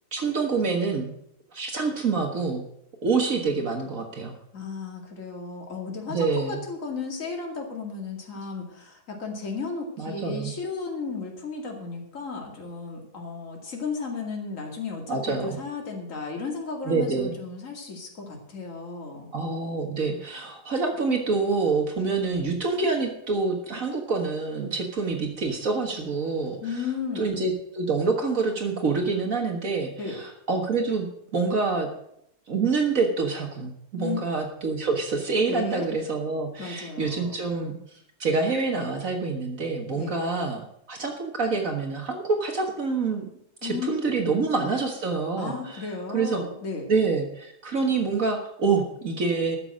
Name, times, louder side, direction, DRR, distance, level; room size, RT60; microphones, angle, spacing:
voice 1, 0.1-1.1 1.5-2.6 3.0-4.4 6.1-6.6 10.0-10.5 15.1-15.6 16.8-17.4 19.3-26.6 27.2-31.9 32.5-40.6 40.9-43.3 43.6-45.9 46.1-46.4 46.9-49.6, right 4 dB, 60° right, 3 dB, 1.9 m, -26 dB
voice 2, 4.5-19.3 26.6-27.4 30.0-30.2 34.0-34.2 35.5-35.9 36.6-37.4 39.9-40.1 43.6-43.9 44.2-44.3 45.4-46.9, left 4 dB, 55° left, 1 dB, 2.7 m, -34 dB
14.0 x 7.0 x 7.5 m, 0.74 s
omnidirectional pair, 1.6 m